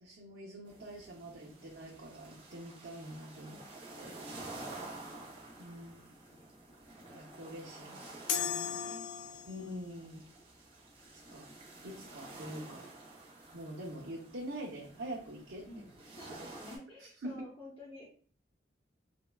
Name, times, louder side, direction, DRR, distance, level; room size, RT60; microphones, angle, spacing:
voice 1, 0.0-3.6 3.9-4.1 5.6-6.0 7.1-7.9 8.3-8.8 9.5-10.2 11.3-11.5 11.8-12.9 13.5-15.7 17.2-17.3, right 1 dB, 90° right, -6 dB, 0.7 m, -45 dB
sound 1, 0.6-16.8, right 2 dB, 30° right, 0.6 m, -50 dB
voice 2, 7.7-8.1 8.8-9.1 15.7-18.1, left 1 dB, 30° left, -8 dB, 0.7 m, -51 dB
sound 2, 8.3-9.8, left 8 dB, 75° left, 0.3 m, -36 dB
3.5 x 2.1 x 2.3 m, 0.44 s
head